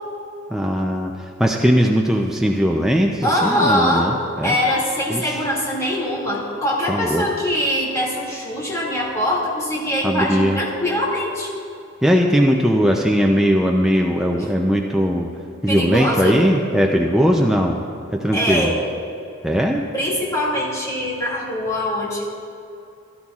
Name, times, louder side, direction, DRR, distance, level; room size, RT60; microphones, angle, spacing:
voice 1, 0.5-1.1 1.4-4.6 5.1-5.5 6.9-7.3 10.0-10.6 12.0-15.3 15.6-17.8 18.1-18.7 19.4-19.8, equal, ahead, 0 dB, 0.4 m, -19 dB
voice 2, 3.2-4.1 4.4-11.5 15.7-16.5 18.3-18.8 19.9-22.4, equal, 15° left, -5 dB, 2.3 m, -22 dB
16.5 x 12.0 x 2.4 m, 2.7 s
head